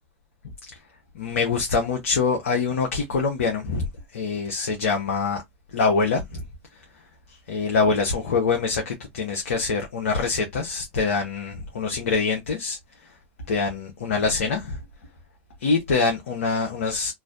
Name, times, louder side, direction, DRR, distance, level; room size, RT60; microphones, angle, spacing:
voice 1, 1.1-3.9 4.1-5.4 5.7-6.4 7.5-12.8 13.5-14.8 15.6-17.1, left 4 dB, 75° left, 0.8 m, -24 dB
3.2 x 2.5 x 2.4 m
hypercardioid pair, 90°, 7 cm